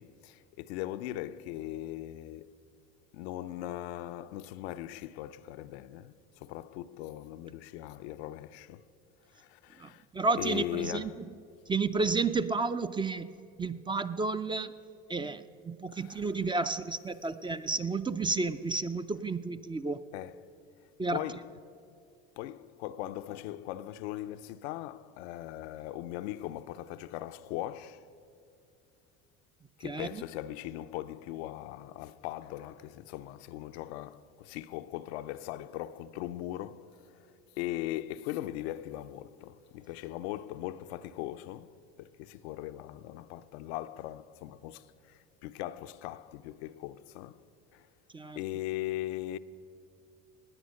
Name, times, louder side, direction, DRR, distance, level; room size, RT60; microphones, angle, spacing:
voice 1, 0.0-2.6 3.1-8.8 9.3-10.0 10.3-11.2 15.9-16.3 16.6-16.7 20.1-20.5 21.1-21.5 21.9-22.0 22.4-28.1 29.8-47.4 47.7-47.9 48.4-49.4, left 14 dB, 80° left, 0.6 m, -39 dB
voice 2, 9.8-11.1 11.7-13.3 13.6-14.7 15.1-20.0 21.0-21.2 29.8-30.2 48.1-48.4, right 3 dB, 15° right, 0.4 m, -31 dB
18.0 x 9.3 x 6.4 m
supercardioid pair, 85°, 32 cm